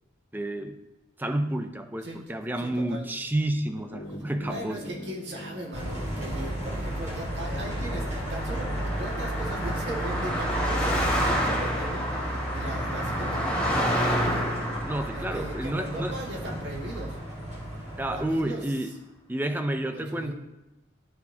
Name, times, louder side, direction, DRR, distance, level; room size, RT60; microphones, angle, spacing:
voice 1, 0.3-0.8 1.2-4.9 14.9-16.2 18.0-18.9 19.3-20.3, right 1 dB, 10° right, 7 dB, 0.5 m, -30 dB
voice 2, 2.6-3.1 4.5-14.5 15.1-17.2 18.0-18.9 19.9-20.3, right 1 dB, 60° right, -3 dB, 1.9 m, -38 dB
sound 1, 3.8-6.8, equal, 85° left, 2.0 m, -43 dB
sound 2, 5.7-18.4, right 1 dB, 35° right, 2.4 m, -33 dB
Car passing by, 6.3-17.8, equal, 5° left, 1.5 m, -30 dB
13.0 x 4.4 x 2.8 m, 1.0 s
head